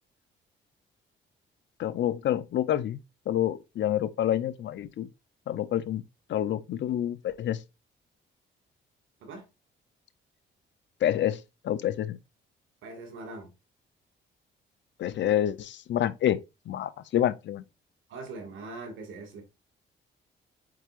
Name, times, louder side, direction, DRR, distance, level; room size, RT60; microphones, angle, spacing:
voice 1, 1.8-3.0 3.3-5.1 5.5-6.0 6.3-7.6 11.0-12.2 15.0-17.6, left 11 dB, 65° left, 0.7 m, -28 dB
voice 2, 12.8-13.5 18.1-19.4, right 3 dB, 80° right, 2.3 m, -41 dB
7.8 x 4.7 x 2.6 m
cardioid pair, 90°, 20 cm